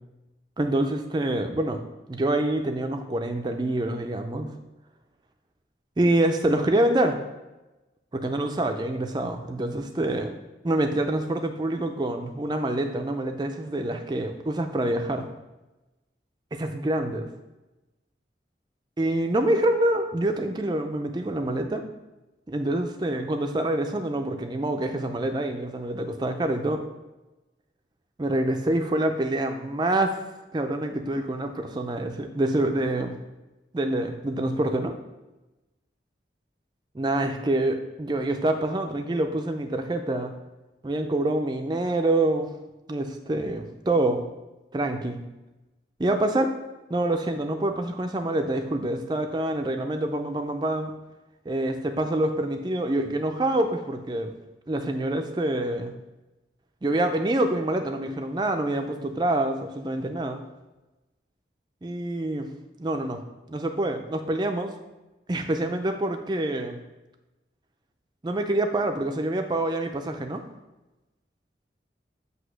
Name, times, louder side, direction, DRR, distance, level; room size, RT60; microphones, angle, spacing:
voice 1, 0.6-1.8 2.1-4.5 6.0-7.2 8.1-10.4 10.6-15.3 16.5-17.3 19.0-21.8 22.5-26.8 28.2-33.2 33.7-35.0 36.9-40.3 40.8-42.5 42.9-44.2 44.7-45.2 46.0-46.6 46.9-50.9 51.5-54.3 54.7-55.9 56.8-60.4 61.8-62.5 62.8-63.2 63.5-64.7 65.3-66.8 68.2-70.4, right 1 dB, 25° right, 5 dB, 0.4 m, -26 dB
7.9 x 2.8 x 6.1 m, 1.0 s
head